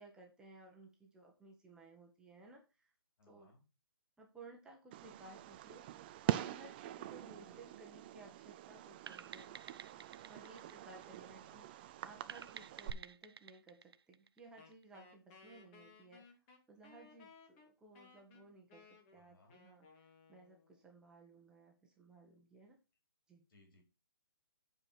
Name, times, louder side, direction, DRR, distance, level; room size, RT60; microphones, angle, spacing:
voice 1, 0.0-2.9 3.3-3.5 4.2-9.5 10.3-16.2 16.7-22.8 23.3-23.4, right 2 dB, 5° right, 0 dB, 1.3 m, -58 dB
voice 2, 3.2-3.6 7.3-7.7 11.3-11.7 19.1-19.6 23.5-23.8, left 2 dB, 60° left, 3 dB, 4.5 m, -67 dB
Fireworks, 4.9-12.9, right 14 dB, 25° right, 0.5 m, -44 dB
sound 1, 9.1-11.6 12.3-14.8, right 6 dB, 80° right, 0.7 m, -52 dB
Wind instrument woodwind instrument, 14.6-20.9, left 4 dB, 25° left, 2.1 m, -62 dB
8.8 x 5.0 x 5.9 m, 0.28 s
hypercardioid pair, 160°, 13 cm